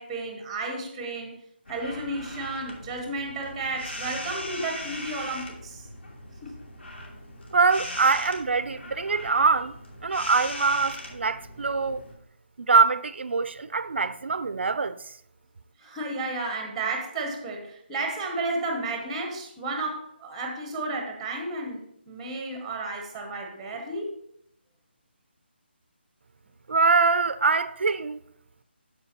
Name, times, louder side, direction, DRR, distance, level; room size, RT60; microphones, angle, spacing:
voice 1, 0.0-1.4 1.7-5.9 6.4-6.5 15.8-24.1, right 2 dB, 5° right, 0.6 m, -32 dB
sound 1, 1.6-12.1, left 1 dB, 90° left, 2.5 m, -40 dB
voice 2, 7.5-9.8 10.0-12.0 12.6-15.1 26.7-28.2, right 4 dB, 70° right, 0.4 m, -23 dB
13.5 x 4.6 x 2.8 m
hypercardioid pair, 175°, 6 cm